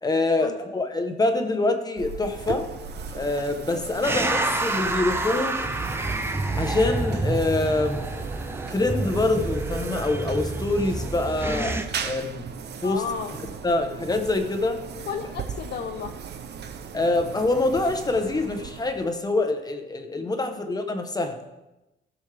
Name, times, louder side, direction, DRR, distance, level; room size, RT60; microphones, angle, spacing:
voice 1, 0.0-2.7 3.1-5.6 6.5-8.2 8.7-12.5 12.8-13.0 13.6-14.8 16.9-21.4, left 2 dB, 20° left, 6 dB, 0.9 m, -25 dB
sound 1, 2.0-19.4, right 6 dB, 55° right, 0.7 m, -38 dB
sound 2, 4.0-11.9, right 2 dB, 10° right, 0.6 m, -28 dB
voice 2, 12.8-13.4 15.1-16.1 20.2-20.6, left 6 dB, 55° left, 4 dB, 0.7 m, -33 dB
16.0 x 6.2 x 3.4 m, 1.0 s
wide cardioid pair, 150°, 21 cm